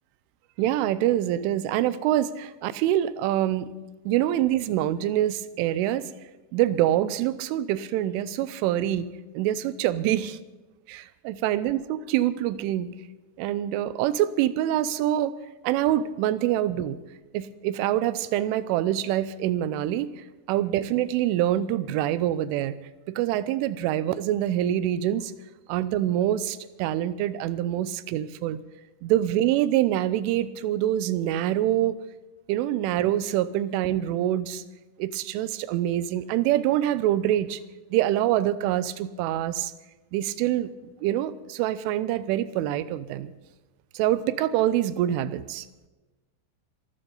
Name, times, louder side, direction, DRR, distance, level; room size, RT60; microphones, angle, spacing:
voice 1, 0.6-3.7 4.1-6.0 6.5-9.1 9.3-10.4 10.9-12.9 13.4-15.3 15.6-17.0 17.3-20.1 20.5-22.8 23.1-25.3 25.7-28.6 29.0-32.0 32.5-34.6 35.0-37.6 37.9-39.7 40.1-43.3 43.9-45.7, right 12 dB, 90° right, 15 dB, 3.2 m, -25 dB
25.0 x 13.5 x 3.9 m, 1.1 s
omnidirectional pair, 5.5 m